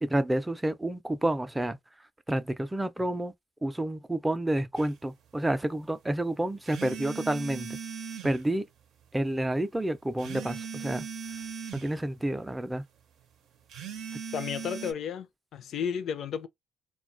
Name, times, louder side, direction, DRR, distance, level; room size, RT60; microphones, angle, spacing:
voice 1, 0.0-1.8 2.3-3.3 3.6-7.8 8.2-8.6 9.1-11.1 11.7-12.8, right 1 dB, 10° right, 0.4 m, -29 dB
sound 1, 4.7-4.9 6.7-8.4 10.2-11.9 13.7-14.9, right 6 dB, 80° right, 0.6 m, -39 dB
voice 2, 14.3-16.5, left 8 dB, 70° left, 0.4 m, -33 dB
2.3 x 2.2 x 2.5 m
cardioid pair, 90°, 0 cm